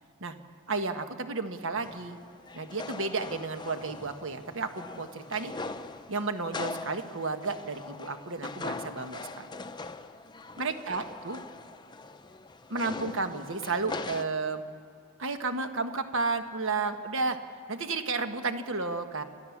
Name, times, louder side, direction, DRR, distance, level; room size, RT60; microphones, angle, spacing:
voice 1, 0.7-2.2 2.5-5.5 6.1-9.5 10.6-11.4 12.7-14.6 15.2-17.4 17.7-19.2, right 3 dB, 60° right, 8 dB, 1.3 m, -32 dB
sound 1, 1.8-14.2, left 3 dB, 20° left, 0.6 m, -41 dB
30.0 x 13.0 x 7.2 m, 2.5 s
head